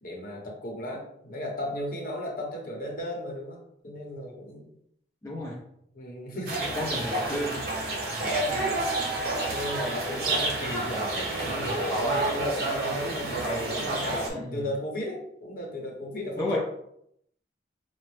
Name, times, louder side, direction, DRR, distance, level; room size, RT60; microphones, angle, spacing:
voice 1, 0.0-4.7 5.9-6.8 8.2-8.6 9.5-16.6, left 1 dB, 50° left, -1 dB, 0.9 m, -35 dB
voice 2, 5.2-5.6 6.7-7.6 14.3-14.6 16.4-16.6, left 1 dB, 15° left, -5 dB, 0.6 m, -31 dB
sound 1, 6.5-14.3, right 2 dB, 55° right, 0.7 m, -29 dB
4.9 x 2.1 x 3.2 m, 0.73 s
head